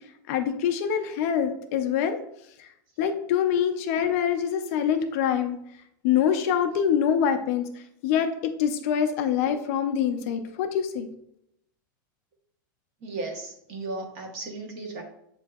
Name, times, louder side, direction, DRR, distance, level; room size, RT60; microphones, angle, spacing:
voice 1, 0.3-2.2 3.0-5.6 6.0-7.7 8.0-8.3 8.6-11.1, left 8 dB, 45° left, 6 dB, 0.4 m, -25 dB
voice 2, 13.0-15.0, right 3 dB, 40° right, 3 dB, 0.9 m, -35 dB
7.5 x 2.6 x 2.3 m, 0.77 s
supercardioid pair, 170°, 11 cm